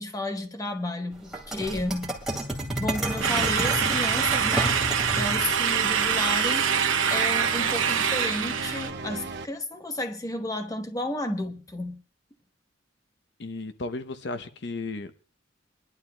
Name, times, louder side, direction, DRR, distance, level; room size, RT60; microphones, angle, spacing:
voice 1, 0.0-2.1 2.8-6.8 7.1-12.0, left 1 dB, 20° left, 1.0 m, -32 dB
sound 1, 1.3-5.5 7.1-7.9, right 1 dB, ahead, 2.4 m, -31 dB
sound 2, 3.2-9.4, right 2 dB, 60° right, 0.9 m, -38 dB
sound 3, 3.2-8.9, right 7 dB, 90° right, 0.9 m, -25 dB
voice 2, 13.4-15.2, left 3 dB, 60° left, 0.7 m, -34 dB
25.5 x 11.5 x 2.2 m
head